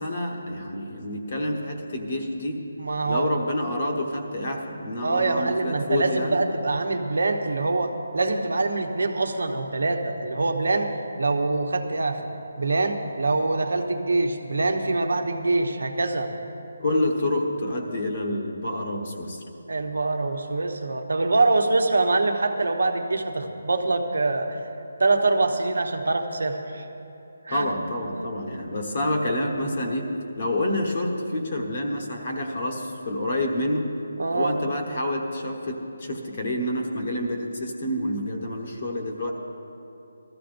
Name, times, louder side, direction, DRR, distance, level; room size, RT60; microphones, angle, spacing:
voice 1, 0.0-2.6 3.1-6.4 16.8-19.4 27.5-33.9 34.3-39.3, left 1 dB, 35° left, 1 dB, 1.2 m, -28 dB
voice 2, 2.8-3.3 5.0-10.9 11.2-12.2 12.6-16.3 19.7-24.6 25.0-26.8 27.4-27.7 28.1-28.3 34.2-34.6, right 3 dB, 80° right, 4 dB, 1.0 m, -24 dB
17.5 x 13.5 x 2.6 m, 2.8 s
hypercardioid pair, 175°, 0 cm